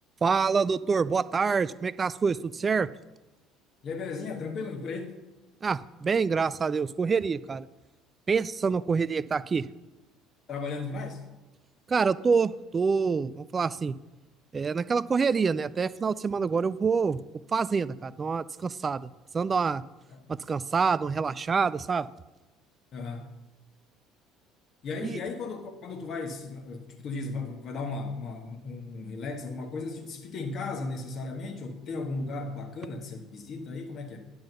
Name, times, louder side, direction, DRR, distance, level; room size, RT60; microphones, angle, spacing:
voice 1, 0.2-2.9 5.6-7.6 8.3-9.7 11.9-13.9 14.5-17.2 17.5-19.1 19.3-19.8 20.3-22.1 25.0-25.2, right 5 dB, 25° right, 0.3 m, -26 dB
voice 2, 3.8-5.1 10.5-11.2 20.1-20.2 22.9-23.3 24.8-34.2, left 3 dB, 45° left, 1.6 m, -36 dB
10.5 x 5.4 x 6.9 m
figure-of-eight pair, 60°, 0 cm